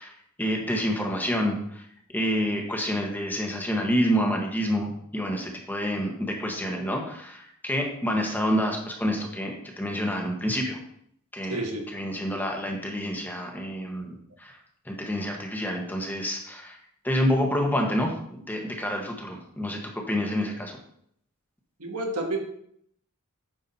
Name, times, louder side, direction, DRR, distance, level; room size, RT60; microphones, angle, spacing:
voice 1, 0.0-1.8 2.1-10.8 11.3-11.6 11.9-14.6 14.8-16.8 17.0-18.1 18.5-20.8, equal, 10° left, 1 dB, 1.4 m, -28 dB
voice 2, 11.5-11.9 21.8-22.4, right 2 dB, 75° right, 2 dB, 1.7 m, -30 dB
9.4 x 6.3 x 4.3 m, 0.68 s
head